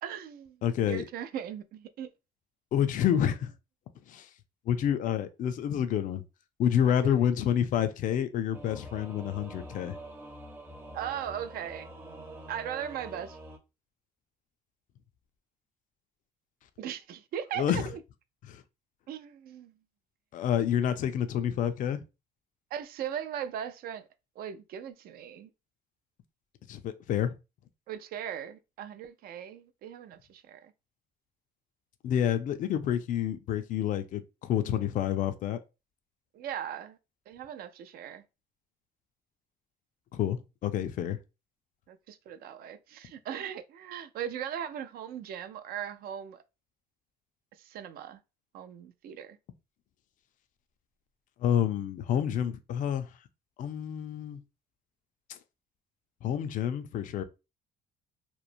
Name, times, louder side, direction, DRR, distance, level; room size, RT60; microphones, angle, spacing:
voice 1, 0.0-0.6 0.9-2.1 3.1-3.2 7.0-7.1 10.9-11.9 12.5-13.4 16.8-18.0 19.1-19.7 22.7-24.1 24.4-25.5 27.9-30.7 36.3-37.0 37.3-38.2 41.9-46.4 47.6-48.2 48.5-49.4, right 9 dB, 65° right, 0.4 m, -38 dB
voice 2, 0.6-1.0 2.7-3.5 4.1-4.3 4.7-6.2 6.6-10.0 17.6-17.9 18.5-18.6 20.3-22.0 26.7-27.3 32.0-35.6 40.1-41.2 51.4-53.1 53.6-54.4 56.2-57.2, left 9 dB, 50° left, 0.4 m, -28 dB
Singing / Musical instrument, 8.5-13.6, right 1 dB, 15° right, 0.6 m, -45 dB
3.0 x 2.0 x 2.5 m
cardioid pair, 110°, 17 cm